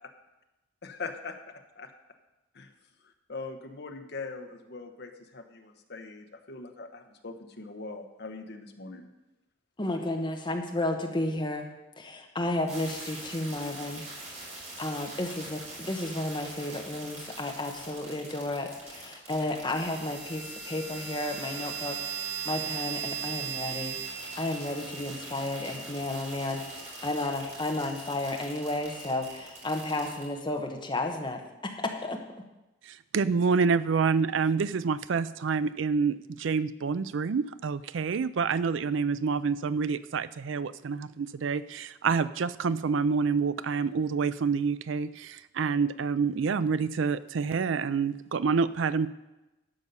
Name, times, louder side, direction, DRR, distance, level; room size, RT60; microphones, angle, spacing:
voice 1, 1.0-1.3 1.8-1.9 2.6-2.7 3.3-9.1, left 3 dB, 55° left, 5 dB, 1.0 m, -41 dB
voice 2, 9.8-11.6 12.0-14.0 14.3-32.2, left 2 dB, 25° left, 3 dB, 1.1 m, -33 dB
sound 1, 12.7-30.3, right 5 dB, 40° right, 4.2 m, -40 dB
voice 3, 32.9-49.1, right 5 dB, 75° right, 15 dB, 0.4 m, -27 dB
12.0 x 5.5 x 6.9 m, 1.0 s
head